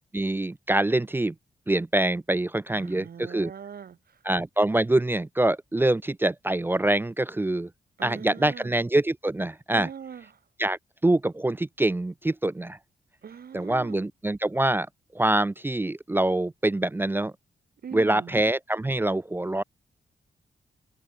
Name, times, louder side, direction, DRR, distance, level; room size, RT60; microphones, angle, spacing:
voice 1, 0.1-1.3 1.7-3.5 4.2-7.7 8.0-9.9 10.6-12.8 13.5-14.9 15.1-17.3 17.9-19.6, right 1 dB, 15° right, 0.4 m, -25 dB
voice 2, 2.7-4.2 8.0-8.8 9.7-10.3 13.2-14.0 17.8-18.3, right 7 dB, 70° right, 7.0 m, -41 dB
cardioid pair, 90°, 16 cm